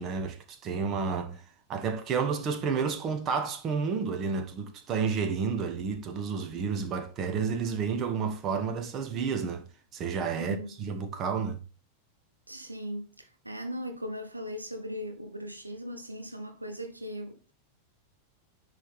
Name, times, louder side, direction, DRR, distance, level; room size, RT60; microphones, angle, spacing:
voice 1, 0.0-1.4 1.7-9.7 9.9-11.6, right 5 dB, 30° right, 1.2 m, -31 dB
voice 2, 10.4-10.8 12.5-17.5, equal, 85° right, 0.7 m, -38 dB
9.7 x 3.6 x 4.1 m
figure-of-eight pair, 90°, 0 cm